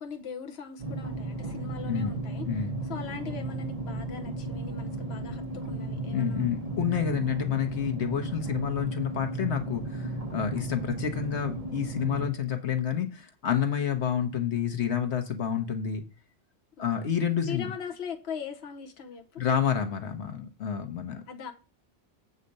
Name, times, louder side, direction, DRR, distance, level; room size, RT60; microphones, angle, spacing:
voice 1, 0.0-6.7 13.6-13.8 16.8-17.1 17.5-19.4 21.3-21.5, left 6 dB, 70° left, 1.2 m, -40 dB
sound 1, 0.8-12.3, right 2 dB, 35° right, 1.2 m, -34 dB
voice 2, 2.5-2.8 6.1-16.0 16.8-17.7 19.4-21.2, left 8 dB, 85° left, 1.4 m, -29 dB
8.0 x 4.2 x 6.5 m
omnidirectional pair, 1.1 m